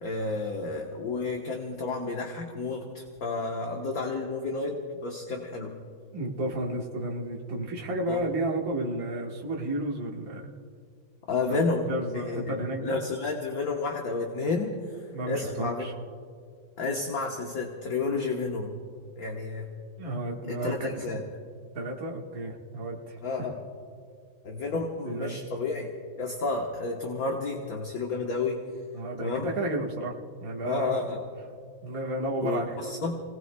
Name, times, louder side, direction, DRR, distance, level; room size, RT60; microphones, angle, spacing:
voice 1, 0.0-5.7 8.1-8.2 11.3-11.9 12.3-14.7 15.3-15.8 16.8-18.8 19.2-19.7 20.5-21.2 23.2-23.6 24.4-25.9 26.2-28.6 29.2-29.5 30.6-31.2 32.4-33.2, left 3 dB, 50° left, 1 dB, 1.4 m, -31 dB
voice 2, 6.1-10.5 11.5-13.0 15.1-15.9 20.0-21.1 21.8-23.2 25.0-25.5 28.9-30.2 30.4-31.1 31.8-32.8, right 1 dB, 45° right, -1 dB, 1.9 m, -32 dB
30.0 x 18.5 x 2.2 m, 2.1 s
omnidirectional pair, 2.2 m